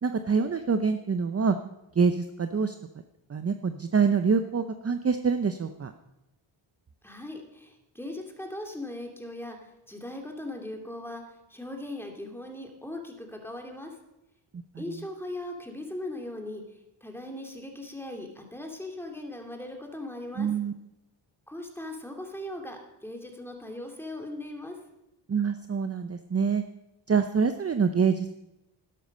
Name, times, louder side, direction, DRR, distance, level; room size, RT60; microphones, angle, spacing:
voice 1, 0.0-1.6 1.9-2.8 3.3-5.9 14.7-14.8 20.4-20.7 25.3-26.6 27.1-28.3, right 5 dB, 30° right, 8 dB, 0.7 m, -25 dB
voice 2, 7.0-14.0 14.8-16.6 17.0-20.5 21.5-24.8, left 1 dB, 5° left, 2 dB, 2.5 m, -39 dB
12.5 x 11.5 x 5.4 m, 0.91 s
cardioid pair, 85°, 49 cm